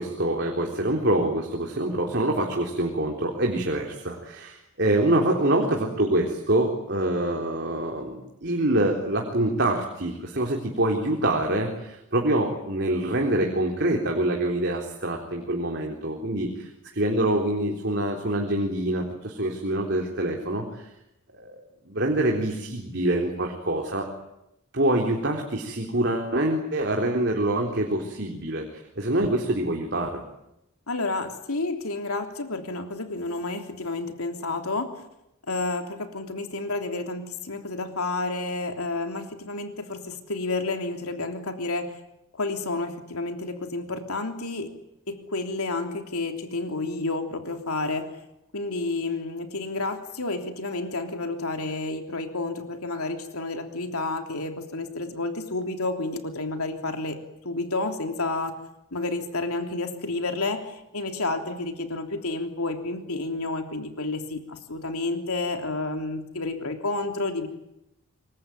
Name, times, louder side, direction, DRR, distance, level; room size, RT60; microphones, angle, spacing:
voice 1, 0.0-20.9 21.3-24.1 24.7-28.7 29.0-30.2, right 1 dB, 50° right, 1 dB, 3.8 m, -25 dB
voice 2, 30.9-35.0 35.5-42.0 42.3-44.7 45.1-48.1 48.5-57.2 57.4-58.6 58.9-67.5, left 2 dB, 85° left, 5 dB, 3.3 m, -30 dB
26.5 x 23.5 x 9.4 m, 0.86 s
head